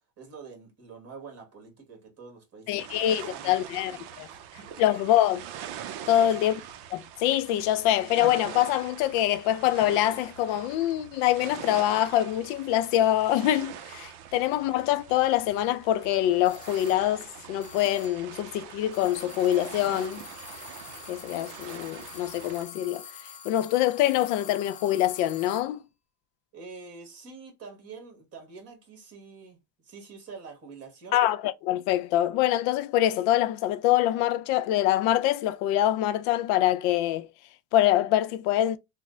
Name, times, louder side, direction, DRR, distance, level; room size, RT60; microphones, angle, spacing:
voice 1, 0.2-3.7 4.0-5.1 6.0-6.3 14.2-14.3 26.5-31.2, right 4 dB, 35° right, 1.5 m, -46 dB
voice 2, 2.7-3.9 4.2-4.3 4.8-5.4 6.1-6.5 6.9-20.2 21.1-23.0 23.4-25.8 31.1-37.3 37.7-38.8, left 13 dB, 75° left, 0.6 m, -25 dB
sound 1, 2.8-22.6, right 9 dB, 60° right, 0.5 m, -43 dB
sound 2, 16.4-17.2 17.6-18.4 18.9-25.8, left 7 dB, 20° left, 0.4 m, -46 dB
3.1 x 2.1 x 3.6 m
cardioid pair, 160°, 45 cm